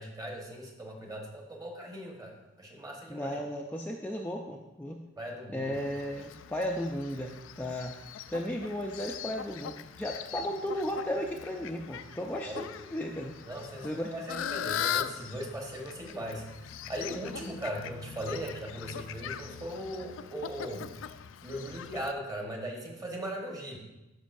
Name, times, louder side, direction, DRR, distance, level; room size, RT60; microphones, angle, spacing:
voice 1, 0.0-3.4 5.2-5.8 12.5-12.6 13.4-20.9 21.4-23.8, right 1 dB, 20° right, 0 dB, 1.3 m, -39 dB
voice 2, 3.1-5.0 5.5-8.0 8.3-13.4 13.8-14.3, equal, 10° left, 0 dB, 0.4 m, -35 dB
Fowl, 5.7-22.1, left 9 dB, 80° left, 0.3 m, -40 dB
12.5 x 5.4 x 2.6 m, 0.97 s
head